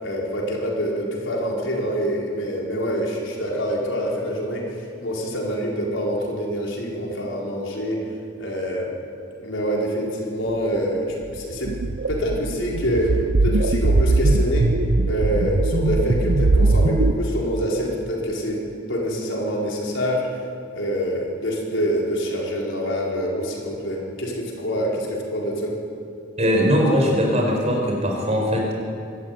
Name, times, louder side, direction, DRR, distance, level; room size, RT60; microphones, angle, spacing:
voice 1, 0.0-8.0 8.4-8.9 9.4-11.7 12.1-13.1 13.4-14.7 15.0-18.6 18.9-20.2 20.7-25.7, equal, 70° left, -2 dB, 4.7 m, -26 dB
sound 1, 11.4-17.1, right 2 dB, 60° right, 0.7 m, -20 dB
voice 2, 26.4-28.7, equal, 35° right, 0 dB, 4.7 m, -20 dB
24.0 x 13.0 x 9.3 m, 2.5 s
head